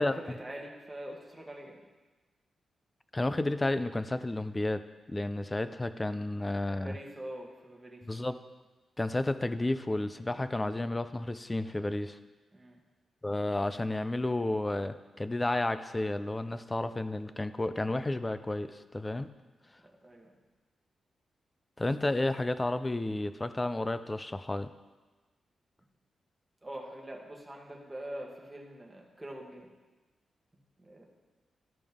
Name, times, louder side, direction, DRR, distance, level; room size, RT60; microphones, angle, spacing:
voice 1, 0.0-1.8 6.7-8.1 12.5-12.8 19.8-20.3 26.6-29.7 30.8-31.1, right 1 dB, 10° right, -1 dB, 1.4 m, -44 dB
voice 2, 3.1-4.8 5.1-7.0 8.1-8.4 9.0-12.2 13.2-19.3 21.8-24.7, left 2 dB, 15° left, 12 dB, 0.4 m, -31 dB
13.0 x 5.2 x 3.6 m, 1.2 s
wide cardioid pair, 135°, 0 cm